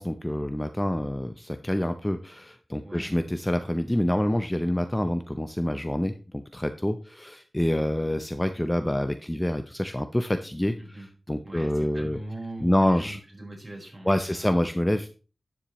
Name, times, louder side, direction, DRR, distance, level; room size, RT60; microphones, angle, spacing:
voice 1, 0.0-10.7 11.3-12.2 12.6-13.2 14.1-15.1, left 1 dB, 10° left, 8 dB, 0.6 m, -27 dB
voice 2, 2.8-3.3 10.8-11.1 11.4-14.6, right 1 dB, 30° right, -1 dB, 4.6 m, -41 dB
11.5 x 7.2 x 3.1 m, 0.35 s
wide cardioid pair, 90°, 0 cm